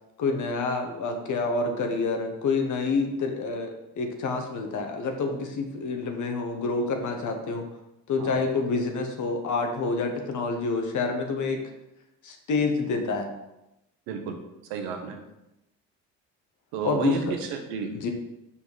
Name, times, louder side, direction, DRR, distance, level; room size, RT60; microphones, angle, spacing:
voice 1, 0.2-7.7 8.1-11.6 12.2-13.3 16.8-17.3 18.0-18.1, left 4 dB, 55° left, 4 dB, 1.2 m, -28 dB
voice 2, 14.1-14.4 14.7-15.2 16.7-18.1, right 5 dB, 90° right, 4 dB, 1.1 m, -32 dB
5.6 x 5.1 x 4.1 m, 0.91 s
supercardioid pair, 80°, 35 cm